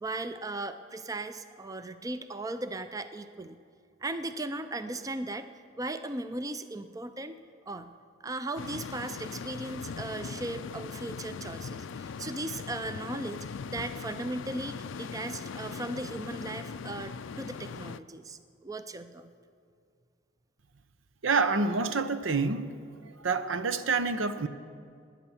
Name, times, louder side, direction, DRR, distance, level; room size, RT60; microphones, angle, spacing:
voice 1, 0.0-3.6 4.0-5.5 5.8-7.4 7.7-7.9 8.2-19.3, right 2 dB, 20° right, 10 dB, 0.5 m, -37 dB
sound 1, 8.6-18.0, left 5 dB, 75° left, 0.4 m, -40 dB
voice 2, 21.2-22.8 23.2-24.5, right 4 dB, 90° right, 11 dB, 0.8 m, -27 dB
20.0 x 9.5 x 7.2 m, 2.3 s
head